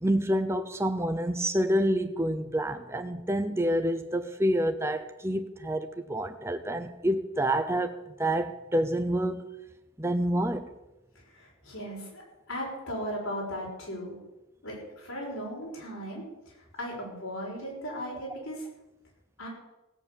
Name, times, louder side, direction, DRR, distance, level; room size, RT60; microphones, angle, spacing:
voice 1, 0.0-9.5 10.0-10.7, right 1 dB, 10° right, 0.6 m, -28 dB
voice 2, 11.3-12.2 12.5-14.2 14.6-18.7 19.4-19.5, equal, 80° left, 6.3 m, -37 dB
17.0 x 8.5 x 7.0 m
head